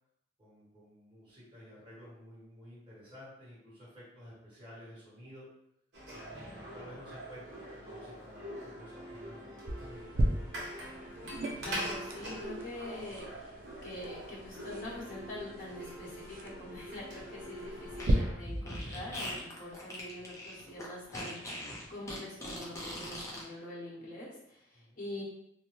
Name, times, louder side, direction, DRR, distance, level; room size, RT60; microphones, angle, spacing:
voice 1, 0.4-5.5 6.1-9.5 9.8-10.3 24.7-25.0, equal, 30° right, -10 dB, 1.5 m, -52 dB
sound 1, 5.9-18.3, equal, 70° right, 0.8 m, -44 dB
sound 2, 9.7-18.1, right 1 dB, 50° right, 0.4 m, -39 dB
voice 2, 11.6-13.6 13.8-25.2, left 1 dB, 50° left, -7 dB, 1.1 m, -44 dB
Fart, 17.9-23.4, left 1 dB, 15° left, 0.6 m, -41 dB
2.7 x 2.1 x 3.0 m, 0.76 s
head